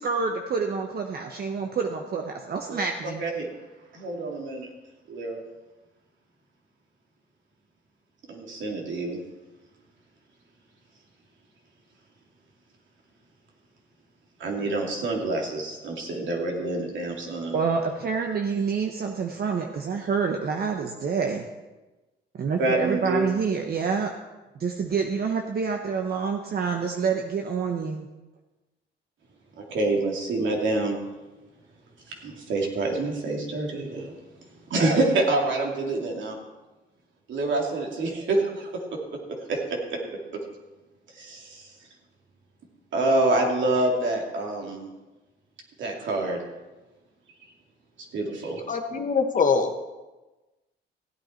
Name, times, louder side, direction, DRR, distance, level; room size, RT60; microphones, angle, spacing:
voice 1, 0.0-3.2 17.5-21.4 22.4-24.1 24.6-28.1, right 5 dB, 50° right, 3 dB, 1.0 m, -27 dB
voice 2, 3.9-4.7 5.1-5.4 8.3-9.2 14.4-17.5 22.6-23.3 29.6-31.0 32.2-34.1 34.7-36.4 37.3-38.7 39.5-39.8 41.1-41.7 42.9-44.9 45.8-46.4 48.1-48.6, right 2 dB, 70° right, 0 dB, 2.6 m, -26 dB
voice 3, 48.7-49.9, left 5 dB, 40° left, 5 dB, 1.4 m, -24 dB
15.5 x 8.8 x 4.4 m, 1.1 s
cardioid pair, 90°, 20 cm